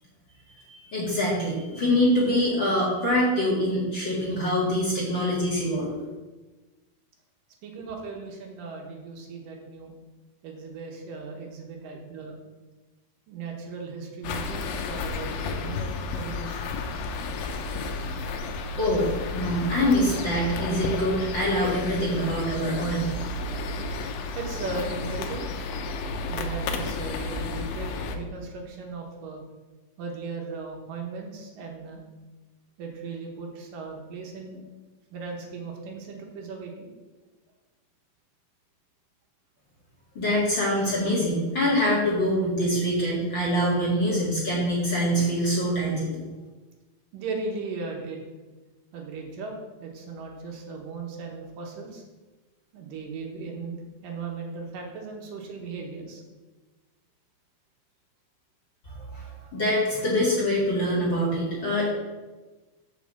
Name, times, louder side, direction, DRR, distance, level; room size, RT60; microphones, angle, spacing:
voice 1, 0.7-5.9 18.0-18.1 18.8-23.2 40.2-46.2 58.9-61.9, equal, 40° left, -6 dB, 2.1 m, -25 dB
voice 2, 7.6-9.9 10.4-12.4 13.3-16.8 24.4-25.5 26.3-29.4 30.0-32.0 32.8-34.6 35.1-36.9 47.1-48.2 48.9-49.5 49.8-52.0 52.7-56.2 59.2-59.5, right 4 dB, 75° right, 0 dB, 2.8 m, -37 dB
sound 1, 14.2-28.2, left 3 dB, 85° left, 2.5 m, -32 dB
6.9 x 5.1 x 7.2 m, 1.2 s
omnidirectional pair, 4.0 m